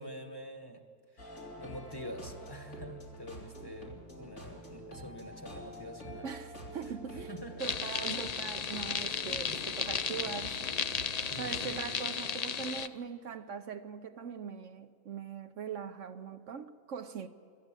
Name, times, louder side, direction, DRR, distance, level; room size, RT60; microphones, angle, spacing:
voice 1, 0.0-6.3 7.1-7.7 9.4-9.6 11.3-12.1, equal, 15° left, 1.3 m, -46 dB
sound 1, 1.2-11.8, equal, 80° left, 3.8 m, -47 dB
voice 2, 6.2-7.3 7.6-10.8 11.3-17.3, right 6 dB, 65° right, 1.1 m, -41 dB
sound 2, 7.6-12.9, left 6 dB, 60° left, 0.4 m, -35 dB
24.5 x 13.5 x 8.9 m
omnidirectional pair, 1.4 m